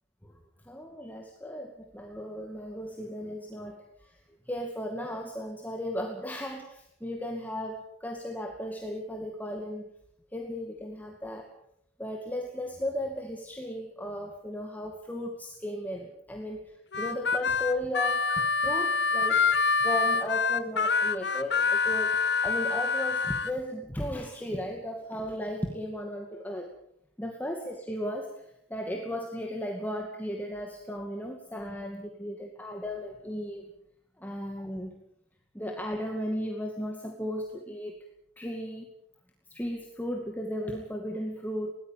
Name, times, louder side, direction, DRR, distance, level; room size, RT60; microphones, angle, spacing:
voice 1, 0.6-9.9 10.3-11.5 12.0-26.7 27.2-28.3 28.7-33.7 34.2-35.0 35.5-38.0 38.4-38.9 39.5-41.7, equal, 10° left, 2 dB, 2.3 m, -35 dB
Harmonica, 16.9-23.5, left 4 dB, 70° left, 1.0 m, -26 dB
22.0 x 18.5 x 7.5 m, 0.73 s
head